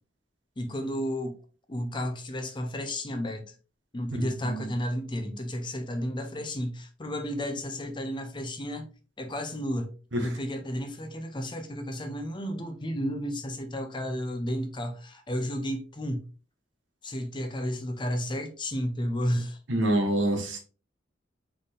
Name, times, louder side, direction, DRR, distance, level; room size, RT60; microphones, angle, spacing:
voice 1, 0.6-1.4 1.7-3.5 3.9-8.9 9.2-9.9 10.2-16.2 17.0-19.6, equal, 25° left, 0.7 m, -32 dB
voice 2, 4.2-4.7 10.1-10.3 19.7-20.6, right 1 dB, 90° right, 1.3 m, -26 dB
4.3 x 3.5 x 3.4 m
head